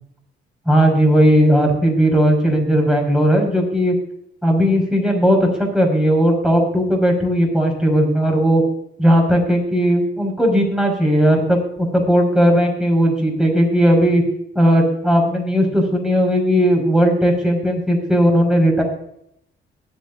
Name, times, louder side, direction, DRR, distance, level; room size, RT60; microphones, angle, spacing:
voice 1, 0.7-4.0 4.4-8.6 9.0-14.2 14.5-18.8, equal, 5° right, 1 dB, 5.8 m, -16 dB
22.5 x 8.8 x 2.6 m, 0.74 s
cardioid pair, 90°, 20 cm